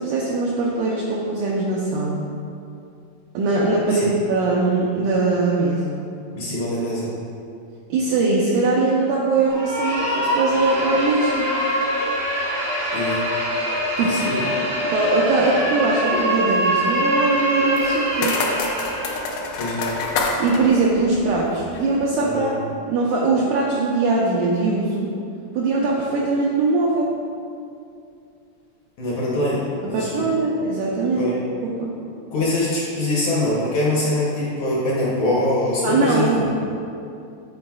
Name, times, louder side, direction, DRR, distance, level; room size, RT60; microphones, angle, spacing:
voice 1, 0.0-2.3 3.3-6.0 7.9-11.7 14.0-14.2 14.9-18.3 20.4-22.5 22.9-25.1 25.5-27.1 29.8-31.3 31.6-31.9 35.8-36.5, right 3 dB, 85° right, -4 dB, 1.8 m, -21 dB
voice 2, 6.3-7.1 12.9-13.2 14.0-14.4 19.6-19.9 22.2-22.6 29.0-30.3 31.2-31.4 32.3-36.5, left 1 dB, 70° left, -6 dB, 1.8 m, -23 dB
sound 1, 9.5-19.4, equal, 60° right, 0.9 m, -23 dB
sound 2, 17.8-21.9, left 3 dB, 90° left, 1.7 m, -28 dB
9.2 x 4.8 x 2.3 m, 2.5 s
omnidirectional pair, 4.2 m